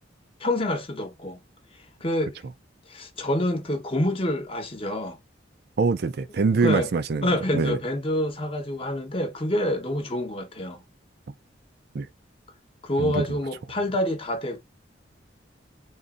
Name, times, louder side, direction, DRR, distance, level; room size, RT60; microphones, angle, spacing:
voice 1, 0.4-1.4 2.0-2.4 2.9-5.2 6.6-6.9 7.2-10.8 12.8-14.6, left 1 dB, 30° left, 0.9 m, -27 dB
voice 2, 5.8-7.3 7.5-7.8 11.9-12.1 13.0-13.2, right 4 dB, 55° right, 0.4 m, -24 dB
3.8 x 3.1 x 2.5 m
head